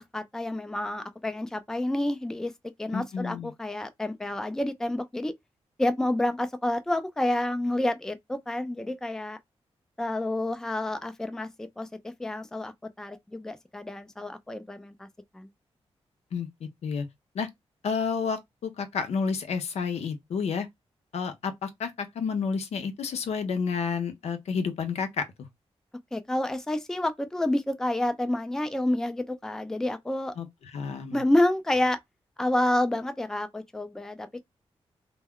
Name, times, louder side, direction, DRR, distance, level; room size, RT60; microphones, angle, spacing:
voice 1, 0.0-5.3 5.8-9.4 10.0-15.1 15.3-15.5 26.1-30.3 31.1-32.0 32.4-34.4, left 1 dB, 5° left, 0.3 m, -29 dB
voice 2, 2.9-3.5 16.3-17.1 17.3-17.5 17.8-20.7 21.1-25.3 30.4-31.2, left 5 dB, 85° left, 0.5 m, -30 dB
2.2 x 2.1 x 3.5 m
wide cardioid pair, 100°, 11 cm